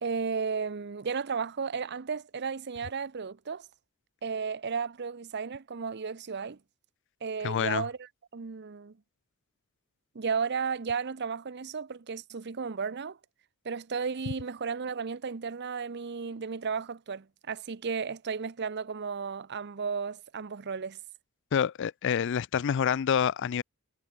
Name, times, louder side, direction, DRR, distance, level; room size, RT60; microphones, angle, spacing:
voice 1, 0.0-3.7 4.2-6.6 7.2-9.0 10.1-13.2 13.6-21.0, right 5 dB, 50° right, 0.7 m, -34 dB
voice 2, 7.4-7.8 21.5-23.6, left 8 dB, 55° left, 0.4 m, -27 dB
head